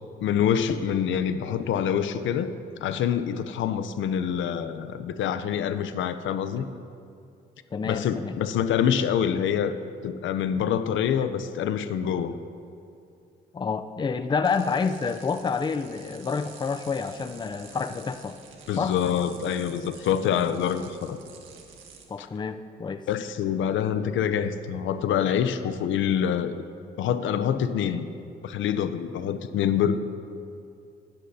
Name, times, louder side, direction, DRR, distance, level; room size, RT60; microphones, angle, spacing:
voice 1, 0.2-2.5 2.8-6.7 7.8-9.8 10.0-12.3 18.7-21.2 22.2-22.3 23.1-26.6 27.0-28.1 28.4-30.0, left 8 dB, 75° left, 11 dB, 0.6 m, -26 dB
voice 2, 7.7-8.4 13.5-18.4 18.8-19.0 22.1-23.1, left 5 dB, 20° left, 9 dB, 0.5 m, -28 dB
sound 1, 14.4-22.1, right 6 dB, 80° right, 1.5 m, -49 dB
20.5 x 10.0 x 2.8 m, 2.5 s
cardioid pair, 90°, 20 cm